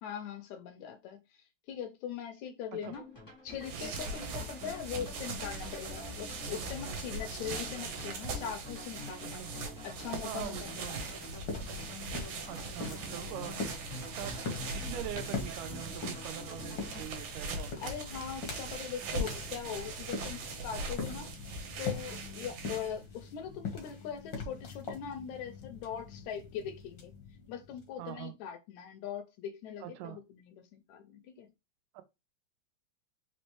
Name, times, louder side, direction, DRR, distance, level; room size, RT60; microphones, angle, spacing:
voice 1, 0.0-3.1 3.4-9.4 9.8-11.2 17.8-21.3 21.8-27.1 27.5-31.5, left 8 dB, 75° left, 1.8 m, -41 dB
sound 1, 2.8-17.0, left 2 dB, 15° left, 0.8 m, -48 dB
sound 2, 3.5-23.1, right 3 dB, 70° right, 2.3 m, -41 dB
voice 2, 9.2-9.5 10.2-11.0 12.5-13.6 14.1-14.4 14.7-17.9 28.0-28.4 29.8-30.2 31.9-32.0, right 13 dB, 85° right, 2.2 m, -43 dB
sound 3, 10.6-28.1, left 4 dB, 60° left, 1.2 m, -43 dB
5.2 x 3.1 x 3.1 m
omnidirectional pair, 3.7 m